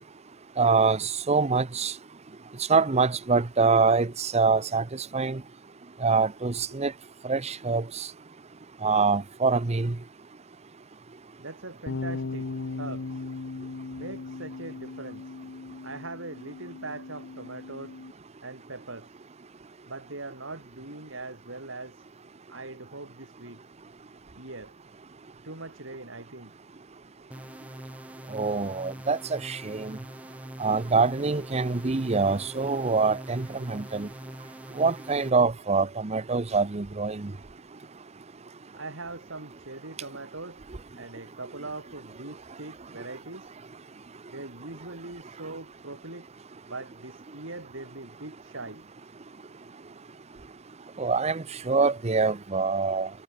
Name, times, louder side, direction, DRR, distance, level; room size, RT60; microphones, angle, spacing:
voice 1, 0.6-1.9 2.7-4.8 5.1-5.4 6.0-6.9 7.3-8.1 8.8-9.9 28.3-30.0 30.6-34.1 34.8-37.3 51.0-53.1, right 4 dB, 35° right, 0.7 m, -25 dB
voice 2, 11.4-12.5 12.8-13.2 14.0-15.3 15.8-18.0 18.4-19.2 19.9-22.0 22.5-23.6 24.4-24.8 25.4-26.5 38.7-40.6 40.9-43.5 44.3-46.3 46.7-48.9, right 2 dB, 85° right, 4.5 m, -41 dB
sound 1, 11.9-18.1, left 3 dB, 70° left, 0.7 m, -37 dB
sound 2, 27.3-35.3, right 1 dB, 5° right, 1.0 m, -43 dB
head